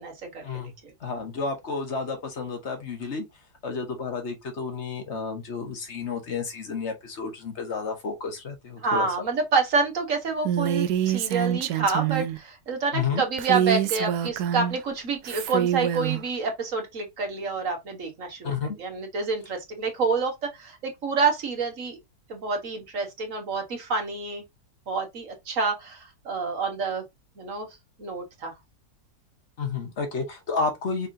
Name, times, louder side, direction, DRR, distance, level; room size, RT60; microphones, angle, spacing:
voice 1, 0.0-0.5 0.8-0.9 8.8-22.0 22.3-24.4 24.9-27.0 27.4-27.7 28.0-28.5, right 4 dB, 55° right, 1.8 m, -28 dB
voice 2, 1.0-3.2 3.6-9.1 12.9-13.2 18.4-18.8 29.6-31.1, left 4 dB, 45° left, 1.7 m, -31 dB
Female speech woman speaking, 10.4-12.4 13.4-14.8 15.2-16.2, right 10 dB, 75° right, 1.1 m, -26 dB
5.5 x 3.5 x 2.7 m
omnidirectional pair, 1.7 m